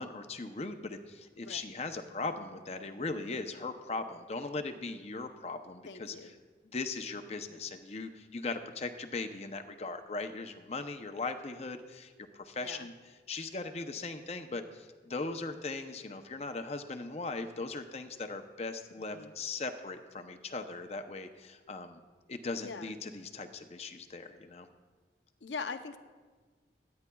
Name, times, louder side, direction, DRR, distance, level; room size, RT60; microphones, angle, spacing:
voice 1, 0.0-6.1 6.7-12.9 13.3-22.0 22.3-24.7, left 3 dB, 35° left, 7 dB, 0.6 m, -39 dB
voice 2, 5.9-6.3 12.6-12.9 19.1-19.3 22.5-22.9 25.4-26.0, left 4 dB, 90° left, 9 dB, 0.7 m, -41 dB
24.0 x 9.5 x 2.3 m, 1.4 s
head